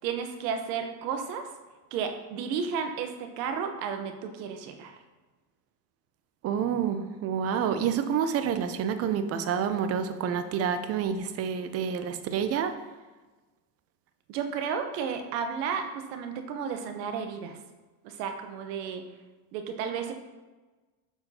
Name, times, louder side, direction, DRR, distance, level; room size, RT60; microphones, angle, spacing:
voice 1, 0.0-1.5 1.9-4.9 14.3-17.6 18.0-19.0 19.5-20.1, right 6 dB, 80° right, 6 dB, 1.0 m, -33 dB
voice 2, 6.4-12.7, right 7 dB, 30° right, 9 dB, 0.5 m, -28 dB
6.9 x 5.7 x 2.8 m, 1.2 s
supercardioid pair, 120°, 49 cm